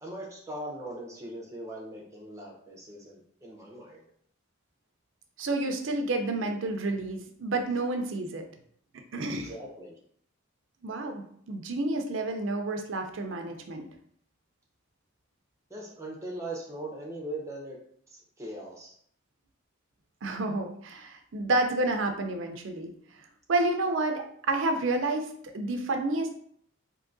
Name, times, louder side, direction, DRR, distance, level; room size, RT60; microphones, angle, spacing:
voice 1, 0.0-4.0 9.3-10.0 15.7-17.8 18.1-18.9, right 1 dB, 15° right, -1 dB, 0.7 m, -40 dB
voice 2, 5.4-8.4 9.1-9.5 10.8-13.9 20.2-22.9 23.5-25.3 25.5-26.4, right 2 dB, 65° right, 5 dB, 0.5 m, -29 dB
3.6 x 2.7 x 2.6 m, 0.63 s
head